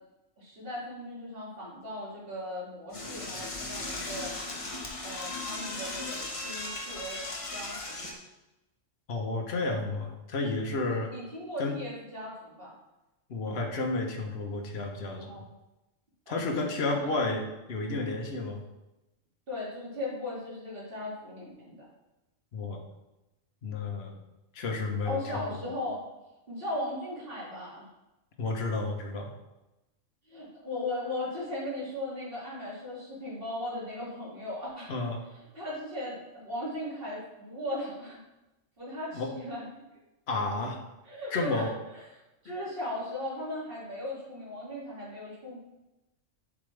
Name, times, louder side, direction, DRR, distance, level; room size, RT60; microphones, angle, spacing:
voice 1, 0.4-4.4 5.0-7.2 7.5-8.2 10.8-12.7 15.2-15.4 16.3-17.1 19.5-21.9 25.0-26.0 26.5-27.8 30.3-34.9 35.5-36.2 36.4-38.2 38.8-39.7 41.1-41.6 41.9-42.0 42.4-45.6, left 1 dB, 45° right, -7 dB, 2.6 m, -37 dB
Door / Toilet flush, 2.9-8.1, left 2 dB, 30° left, 0.9 m, -37 dB
voice 2, 9.1-11.1 11.6-11.8 13.3-15.4 16.3-18.6 22.5-22.8 23.6-24.2 24.5-25.7 28.4-29.3 34.9-35.2 39.1-39.3 40.3-40.8 41.3-41.7 42.4-42.5, left 3 dB, 55° left, 2 dB, 1.2 m, -31 dB
7.4 x 5.0 x 3.3 m, 0.97 s
omnidirectional pair, 1.3 m